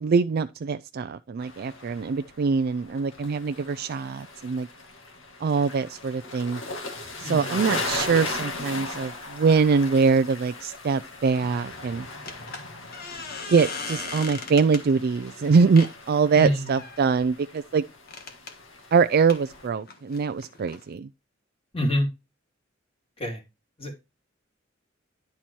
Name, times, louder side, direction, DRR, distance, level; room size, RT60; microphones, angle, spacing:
voice 1, 0.0-4.7 5.4-6.6 7.2-12.1 13.5-17.8 18.9-21.1, right 5 dB, 50° right, 0.4 m, -23 dB
sound 1, 1.4-19.7, left 2 dB, 90° left, 1.9 m, -38 dB
voice 2, 7.2-7.6 16.4-16.7 21.7-22.1 23.2-23.4 23.8-23.9, equal, 30° left, 2.4 m, -26 dB
sound 2, 11.0-11.2 12.3-14.9 15.8-16.0 16.6-17.1 18.1-18.5 19.3-20.8, left 4 dB, 50° left, 1.5 m, -38 dB
10.5 x 4.3 x 4.6 m
head